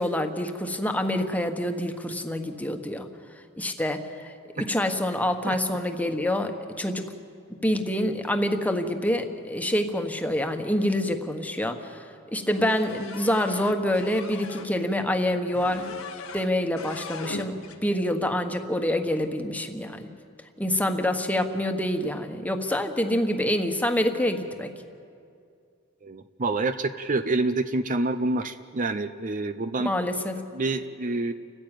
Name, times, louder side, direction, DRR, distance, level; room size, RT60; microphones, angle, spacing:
voice 1, 0.0-3.1 3.6-6.5 6.8-7.1 7.6-12.0 12.3-16.0 16.3-20.1 20.6-24.7 29.8-30.4, left 1 dB, 5° left, 5 dB, 1.4 m, -26 dB
sound 1, 12.5-14.7 15.5-16.5 16.8-17.8, left 3 dB, 90° left, 1.6 m, -39 dB
voice 2, 26.0-29.9 30.5-31.3, right 2 dB, 40° right, 10 dB, 0.6 m, -27 dB
29.5 x 15.0 x 9.1 m, 2.4 s
head